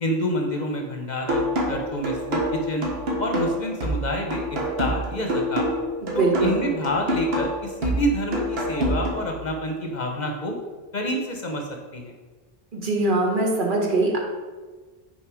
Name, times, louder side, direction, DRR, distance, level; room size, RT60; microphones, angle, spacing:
voice 1, 0.0-2.9 3.2-5.7 6.1-10.6 10.9-12.1, equal, 50° left, 2 dB, 0.9 m, -28 dB
sound 1, 1.3-9.3, equal, 75° right, 1.4 m, -27 dB
voice 2, 6.0-6.6 12.7-14.2, right 2 dB, 55° right, -1 dB, 1.3 m, -22 dB
5.8 x 4.3 x 5.0 m, 1.3 s
omnidirectional pair, 1.0 m